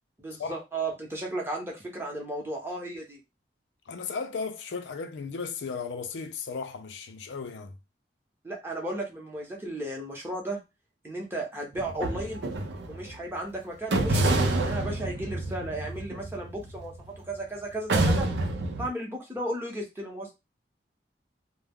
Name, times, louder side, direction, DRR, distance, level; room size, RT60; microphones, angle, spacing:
voice 1, 0.2-3.2 8.4-10.6 11.0-12.4 12.9-16.9 17.3-18.3 18.8-20.3, right 1 dB, 15° right, 0.8 m, -34 dB
voice 2, 3.9-7.8, left 5 dB, 85° left, 0.4 m, -35 dB
sound 1, 11.7-13.2 13.9-17.3 17.9-18.9, right 2 dB, 75° right, 0.5 m, -28 dB
2.2 x 2.0 x 3.4 m
head